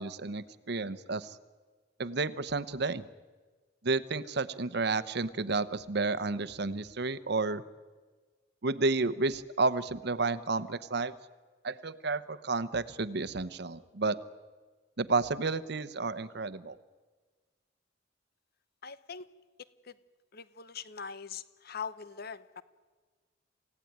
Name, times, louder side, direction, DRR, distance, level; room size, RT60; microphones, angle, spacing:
voice 1, 0.0-1.4 2.0-3.0 3.8-7.6 8.6-11.1 11.6-14.2 15.0-16.8, right 3 dB, 65° right, 14 dB, 0.9 m, -31 dB
voice 2, 18.8-19.3 19.8-19.9 20.3-22.6, left 6 dB, 55° left, 14 dB, 0.9 m, -42 dB
28.0 x 16.5 x 9.4 m, 1.4 s
head